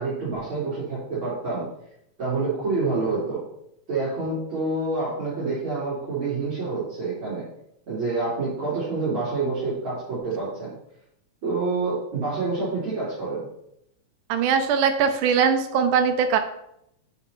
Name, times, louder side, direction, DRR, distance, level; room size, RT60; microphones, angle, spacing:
voice 1, 0.0-1.7 2.2-3.4 3.9-7.4 7.9-10.7 11.4-13.4, right 3 dB, 40° right, -10 dB, 3.6 m, -27 dB
voice 2, 14.3-16.4, right 6 dB, 80° right, 7 dB, 2.3 m, -21 dB
7.1 x 5.4 x 5.5 m, 0.77 s
omnidirectional pair, 3.6 m